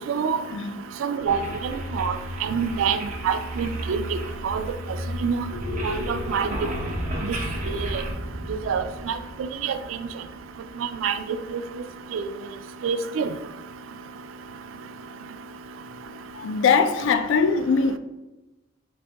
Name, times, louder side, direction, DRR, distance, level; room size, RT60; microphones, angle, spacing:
voice 1, 0.5-0.8 16.3-18.0, left 5 dB, 65° left, 0.3 m, -21 dB
voice 2, 1.0-2.1 2.4-3.0 3.2-4.0 4.4-4.6 5.2-5.4 5.8-6.5 7.7-8.0 8.7-9.1 9.6-9.8 11.0-11.1 12.1-12.3 12.8-13.3, right 6 dB, 75° right, 0.3 m, -26 dB
sound 1, 1.3-8.1, equal, 40° right, 0.7 m, -34 dB
sound 2, 5.5-11.8, equal, 5° left, 0.7 m, -35 dB
4.0 x 3.5 x 2.2 m
head